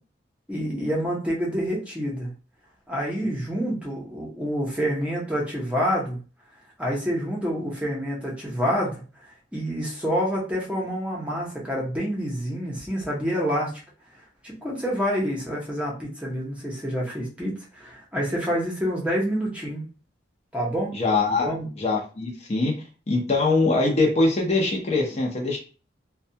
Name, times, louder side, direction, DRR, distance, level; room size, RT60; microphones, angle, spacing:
voice 1, 0.5-2.3 2.9-6.2 6.8-9.0 9.5-13.7 14.4-19.8 20.5-20.9 21.4-21.7, equal, 5° right, -4 dB, 0.7 m, -27 dB
voice 2, 20.9-21.5 21.8-22.7 23.1-25.6, left 3 dB, 35° left, -1 dB, 0.6 m, -22 dB
2.3 x 2.2 x 2.7 m, 0.36 s
head